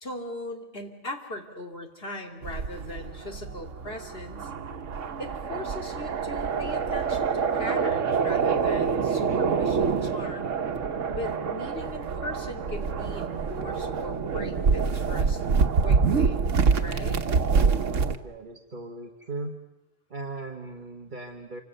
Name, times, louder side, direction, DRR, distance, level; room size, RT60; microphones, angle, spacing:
voice 1, 0.0-4.5 5.2-10.6 11.1-15.4 15.8-16.4 16.8-17.2, left 1 dB, 50° left, 3 dB, 3.0 m, -39 dB
sound 1, 2.4-18.2, right 5 dB, 90° right, 1.5 m, -26 dB
voice 2, 18.2-19.6 20.1-21.6, right 2 dB, 40° right, 2 dB, 1.7 m, -38 dB
28.0 x 25.5 x 6.8 m, 0.98 s
omnidirectional pair, 1.2 m